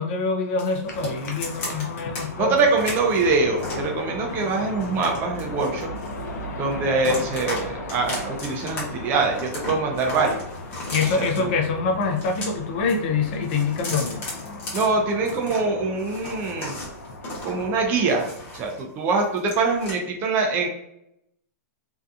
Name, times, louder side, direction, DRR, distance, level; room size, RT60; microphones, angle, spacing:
voice 1, 0.0-2.6 10.9-14.2, left 4 dB, 40° left, 3 dB, 0.4 m, -25 dB
sound 1, 0.6-2.2 2.6-3.9 4.4-6.4 6.7-7.6 7.9-8.8 9.1-11.4 12.0-13.0 13.3-15.6 16.0-18.8 19.1-19.9, left 2 dB, 25° left, 0.9 m, -35 dB
sound 2, 0.9-18.8, left 2 dB, 90° left, 0.6 m, -37 dB
voice 2, 2.4-5.9 6.6-10.4 11.2-11.6 14.7-16.7 17.4-20.7, right 3 dB, 25° right, 2 dB, 0.4 m, -24 dB
2.7 x 2.3 x 2.3 m, 0.79 s
supercardioid pair, 160°, 9 cm